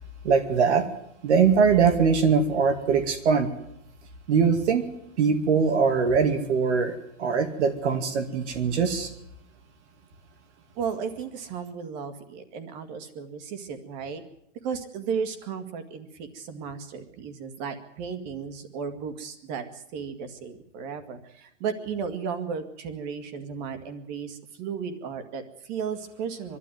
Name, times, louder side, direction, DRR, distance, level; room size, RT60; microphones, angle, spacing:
voice 1, 0.2-0.9 1.2-3.5 4.3-4.9 5.2-9.1, right 5 dB, 65° right, 6 dB, 2.4 m, -22 dB
voice 2, 10.7-14.2 14.6-26.6, right 6 dB, 35° right, 9 dB, 2.1 m, -34 dB
24.0 x 12.5 x 9.5 m, 0.79 s
supercardioid pair, 170°, 37 cm